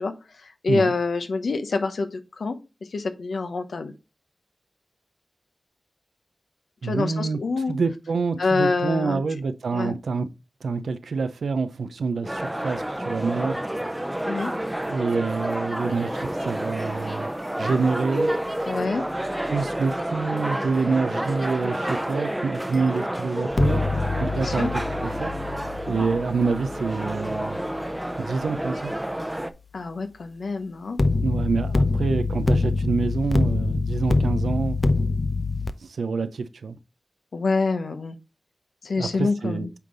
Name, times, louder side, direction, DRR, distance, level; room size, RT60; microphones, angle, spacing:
voice 1, 0.0-2.6 2.9-3.9 6.8-7.7 8.4-9.2 9.7-10.0 14.2-14.5 18.7-19.0 24.3-24.7 25.9-26.1 29.7-31.0 37.3-38.2 38.8-39.7, left 3 dB, 80° left, 0.9 m, -26 dB
voice 2, 6.8-7.4 7.7-10.3 10.6-13.6 14.9-17.3 17.6-18.3 19.5-23.8 24.2-25.3 25.8-27.6 28.2-28.9 31.2-34.8 35.8-36.8 39.0-39.7, right 4 dB, 90° right, 0.6 m, -27 dB
sound 1, 12.2-29.5, right 1 dB, 15° right, 0.7 m, -29 dB
sound 2, 23.5-28.6 31.0-35.7, left 3 dB, 50° left, 0.6 m, -25 dB
8.2 x 3.8 x 3.8 m
cardioid pair, 40°, 0 cm